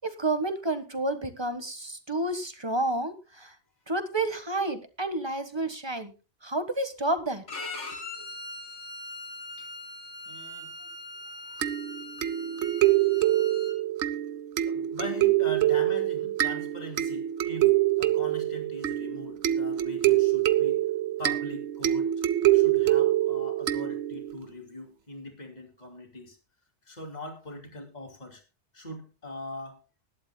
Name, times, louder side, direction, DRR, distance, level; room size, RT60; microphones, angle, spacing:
voice 1, 0.0-3.5 3.9-6.1 6.4-7.4, right 2 dB, 25° right, 9 dB, 1.5 m, -30 dB
Bowed string instrument, 7.5-13.7, left 2 dB, 85° left, 2.4 m, -41 dB
voice 2, 10.2-10.9 11.2-11.7 13.0-13.1 13.4-13.5 14.6-20.8 21.2-22.1 22.5-26.4 26.9-28.4 28.7-29.8, left 1 dB, 40° left, 4 dB, 2.8 m, -41 dB
sound 1, 11.6-24.4, right 14 dB, 85° right, 1.1 m, -25 dB
20.5 x 11.5 x 2.3 m, 0.30 s
omnidirectional pair, 1.2 m